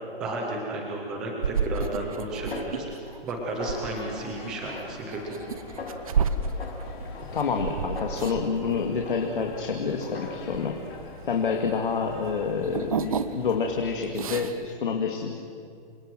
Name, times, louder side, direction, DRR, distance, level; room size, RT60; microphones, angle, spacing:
voice 1, 0.2-5.3, right 2 dB, ahead, 1 dB, 0.5 m, -33 dB
sound 1, 1.4-11.8 12.1-13.6 13.9-14.7, right 6 dB, 35° right, 1.0 m, -31 dB
Snare drum, 2.5-3.3 3.6-4.2 4.7-5.5 5.8-6.2 6.6-8.7 9.0-9.6 10.0-10.7, left 3 dB, 85° left, 6.2 m, -41 dB
sound 2, 3.6-14.5, left 3 dB, 25° left, 3.7 m, -45 dB
voice 2, 7.3-10.8 11.3-15.3, left 5 dB, 55° left, 3 dB, 2.5 m, -28 dB
28.5 x 24.0 x 7.6 m, 2.3 s
hypercardioid pair, 175°, 30 cm